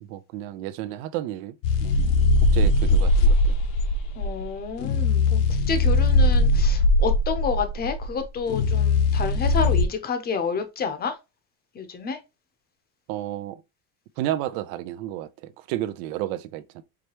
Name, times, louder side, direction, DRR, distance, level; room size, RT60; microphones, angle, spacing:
voice 1, 0.0-1.5 1.8-2.1 2.4-3.6 13.1-13.6 14.2-16.8, right 13 dB, 75° right, 0.7 m, -32 dB
sound 1, 1.6-9.9, left 2 dB, 75° left, 0.9 m, -20 dB
voice 2, 4.2-11.1 11.7-12.2, left 5 dB, 25° left, 0.7 m, -29 dB
4.9 x 3.3 x 2.9 m
cardioid pair, 155°, 42 cm